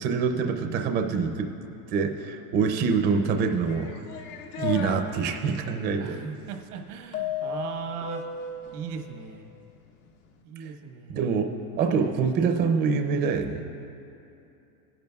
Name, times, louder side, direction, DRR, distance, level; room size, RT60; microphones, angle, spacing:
voice 1, 0.0-1.5 1.9-3.9 4.6-6.2 10.6-10.7 11.1-11.5 11.8-13.6, right 5 dB, 25° right, 5 dB, 0.5 m, -25 dB
voice 2, 0.6-1.0 2.8-2.9 4.5-4.7 6.0-8.2 8.7-9.5 10.4-11.2 12.0-12.1, right 6 dB, 85° right, 5 dB, 1.3 m, -38 dB
sound 1, 3.7-5.0 7.1-8.8, left 6 dB, 85° left, 1.4 m, -33 dB
20.0 x 10.5 x 2.3 m, 2.8 s
supercardioid pair, 140°, 44 cm